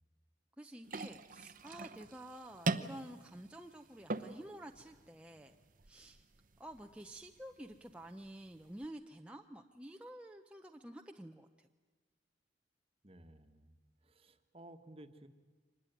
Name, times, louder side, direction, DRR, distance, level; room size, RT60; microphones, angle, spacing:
voice 1, 0.6-5.5 5.9-6.2 6.6-11.7, right 1 dB, 5° right, 3 dB, 0.7 m, -50 dB
sound 1, 0.8-8.9, right 3 dB, 50° right, 0.9 m, -43 dB
voice 2, 13.0-13.7 14.0-15.3, right 1 dB, 30° right, 8 dB, 1.3 m, -56 dB
24.5 x 20.0 x 9.2 m, 1.3 s
head